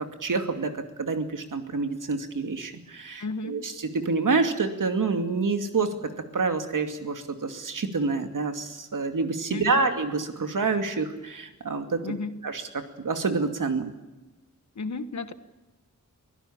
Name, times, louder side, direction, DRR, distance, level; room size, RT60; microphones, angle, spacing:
voice 1, 0.0-6.0 6.3-12.1 12.4-13.9, right 4 dB, 75° right, 7 dB, 2.5 m, -27 dB
voice 2, 3.2-3.6 9.5-9.9 12.0-12.4 14.7-15.3, left 3 dB, 60° left, 11 dB, 1.5 m, -33 dB
23.5 x 16.5 x 8.7 m, 1.1 s
wide cardioid pair, 110°, 32 cm